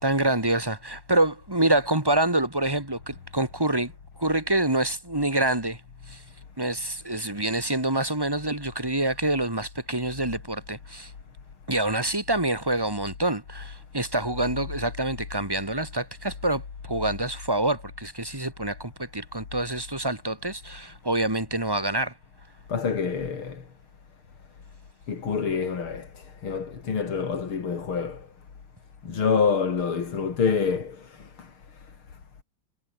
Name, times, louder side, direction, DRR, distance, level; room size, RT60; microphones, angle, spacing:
voice 1, 0.0-3.9 4.2-5.8 6.1-6.2 6.6-11.1 11.7-22.1, right 1 dB, 10° right, 2.7 m, -26 dB
voice 2, 22.7-23.6 25.1-28.3 29.1-31.5, left 6 dB, 75° left, 3.6 m, -27 dB
omnidirectional pair, 2.3 m